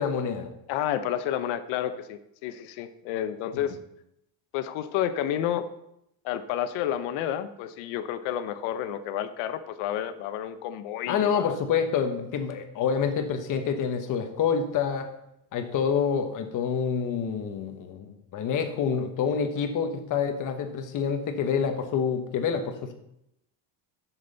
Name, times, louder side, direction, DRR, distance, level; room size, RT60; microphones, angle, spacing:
voice 1, 0.0-0.5 11.1-15.1 15.5-22.9, left 6 dB, 40° left, 6 dB, 1.1 m, -27 dB
voice 2, 0.7-3.8 4.5-5.6 6.2-11.6, left 10 dB, 80° left, 11 dB, 0.9 m, -30 dB
10.5 x 7.4 x 4.0 m, 0.80 s
cardioid pair, 175°, 49 cm